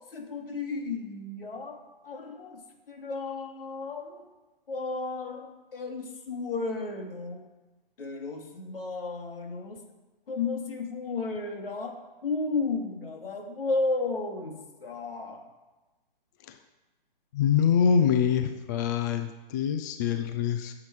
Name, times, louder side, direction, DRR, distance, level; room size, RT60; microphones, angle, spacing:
voice 1, 0.1-1.8 2.0-2.6 2.9-4.3 4.7-5.5 5.7-7.4 8.0-9.8 10.3-11.9 12.2-15.4, left 3 dB, 70° left, 3 dB, 2.6 m, -33 dB
voice 2, 17.3-20.7, left 7 dB, 20° left, 7 dB, 0.4 m, -25 dB
13.5 x 7.6 x 4.8 m, 1.1 s
hypercardioid pair, 140°, 29 cm